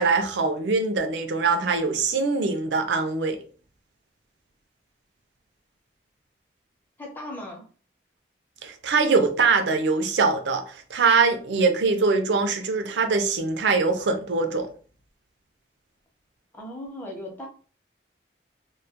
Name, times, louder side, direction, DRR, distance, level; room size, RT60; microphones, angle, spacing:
voice 1, 0.0-3.4 8.6-14.7, right 4 dB, 90° right, 0.5 m, -23 dB
voice 2, 7.0-7.7 16.5-17.5, left 1 dB, 10° left, 0.6 m, -37 dB
2.2 x 2.1 x 2.7 m
head